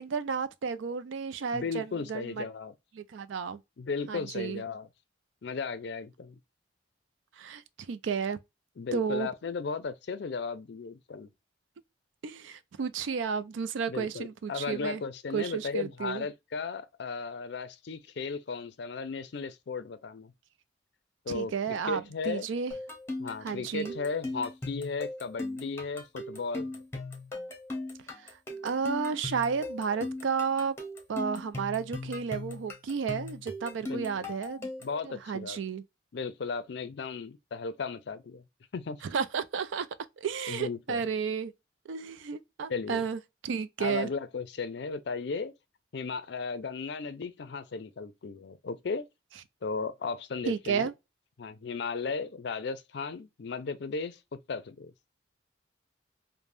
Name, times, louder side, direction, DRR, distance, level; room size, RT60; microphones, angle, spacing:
voice 1, 0.0-2.5 2.9-3.6 4.1-4.6 7.4-8.4 8.9-9.3 12.2-15.0 15.3-16.3 21.3-22.7 23.4-24.0 28.2-28.4 28.6-30.8 31.1-34.7 35.0-35.8 39.0-39.9 40.2-41.5 41.9-44.1 50.5-50.9, right 6 dB, 75° right, 0.4 m, -32 dB
voice 2, 1.5-2.7 3.8-4.9 5.4-6.4 8.8-11.3 13.9-20.3 21.3-22.5 23.2-26.7 33.9-34.3 34.8-35.6 36.1-38.4 38.7-39.0 40.5-41.0 42.7-43.0 43.8-45.5 45.9-49.1 49.6-50.9 51.4-54.9, left 4 dB, 60° left, 0.4 m, -35 dB
sound 1, 22.7-35.0, left 2 dB, 15° left, 0.7 m, -38 dB
3.3 x 2.1 x 2.5 m
head